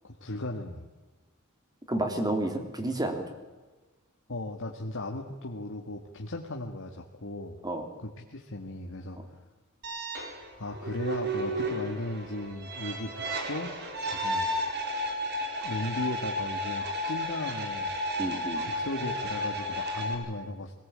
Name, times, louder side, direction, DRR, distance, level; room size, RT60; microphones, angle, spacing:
voice 1, 0.0-0.9 4.3-7.6 8.0-9.2 9.9-10.0 10.6-13.7 14.1-14.5 15.6-18.0 18.7-20.7, left 1 dB, 65° left, 1 dB, 1.9 m, -36 dB
voice 2, 1.9-3.2 7.6-7.9 18.2-18.6, right 1 dB, 20° right, 5 dB, 3.2 m, -30 dB
sound 1, 9.8-20.2, equal, 50° right, 4.1 m, -33 dB
22.0 x 19.0 x 8.8 m, 1.2 s
head